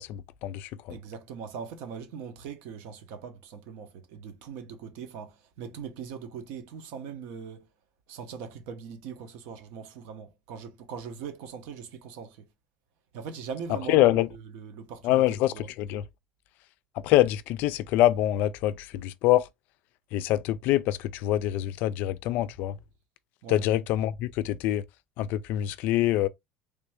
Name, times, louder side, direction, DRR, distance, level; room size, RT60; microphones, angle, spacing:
voice 1, 0.0-1.0 13.9-14.3 15.0-16.0 17.0-19.5 20.1-22.7 23.5-24.8 25.2-26.3, left 14 dB, 50° left, 0.4 m, -25 dB
voice 2, 0.9-7.7 8.1-12.5 13.1-15.7 23.4-23.7, right 6 dB, 65° right, 0.9 m, -41 dB
3.3 x 2.6 x 3.3 m
cardioid pair, 170°, 4 cm